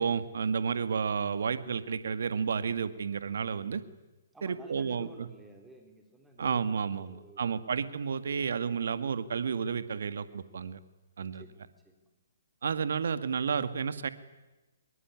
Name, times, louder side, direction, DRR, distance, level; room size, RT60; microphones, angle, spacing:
voice 1, 0.0-3.8 4.4-5.3 6.4-10.8 11.2-11.5 12.6-14.1, right 6 dB, 65° right, 12 dB, 2.0 m, -31 dB
voice 2, 4.3-7.6 8.7-8.9 11.2-12.1, right 1 dB, 5° right, 3 dB, 4.0 m, -54 dB
25.0 x 22.5 x 9.8 m, 1.1 s
figure-of-eight pair, 130°, 0 cm